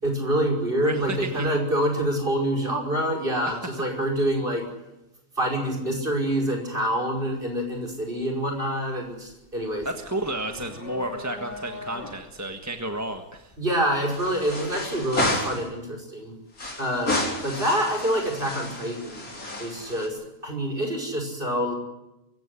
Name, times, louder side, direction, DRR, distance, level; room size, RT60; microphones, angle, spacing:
voice 1, 0.0-4.6 5.4-9.9 13.6-16.3 16.8-19.3 19.6-21.7, right 1 dB, 40° right, 2 dB, 5.8 m, -26 dB
voice 2, 0.8-1.5 3.5-3.6 9.8-13.5, right 1 dB, 10° right, 5 dB, 1.5 m, -32 dB
sound 1, 7.4-7.6 8.0-15.0, left 2 dB, 40° left, 3.3 m, -42 dB
sound 2, 11.5-12.2 12.5-12.6 14.1-15.7 16.5-20.1, left 2 dB, 80° left, 4.8 m, -31 dB
24.5 x 16.0 x 9.9 m, 0.94 s
omnidirectional pair, 1.5 m